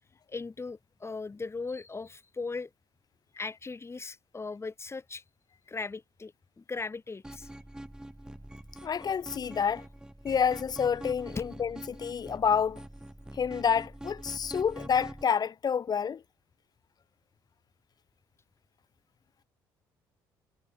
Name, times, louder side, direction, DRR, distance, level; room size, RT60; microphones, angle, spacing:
voice 1, 0.3-2.7 3.4-5.2 5.7-7.5 11.4-11.5, left 4 dB, 25° left, 7.7 m, -38 dB
sound 1, 7.2-15.2, right 1 dB, 5° right, 2.4 m, -45 dB
voice 2, 8.8-9.8 10.2-12.8 13.3-16.2, left 7 dB, 45° left, 1.6 m, -28 dB
supercardioid pair, 70°, 10 cm